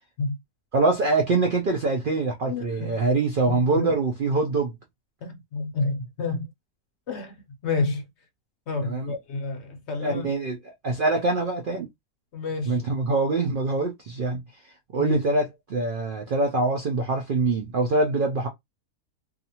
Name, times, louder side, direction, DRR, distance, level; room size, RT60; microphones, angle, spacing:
voice 1, 0.7-4.7 8.8-9.1 10.0-11.9 12.7-14.4 14.9-18.5, right 3 dB, 75° right, 0.4 m, -24 dB
voice 2, 2.5-2.9 3.4-3.9 5.2-6.5 7.1-7.3 7.6-8.0 8.7-10.3 12.3-12.9 15.0-15.2, left 3 dB, 60° left, 0.8 m, -29 dB
2.5 x 2.4 x 2.8 m
omnidirectional pair, 1.6 m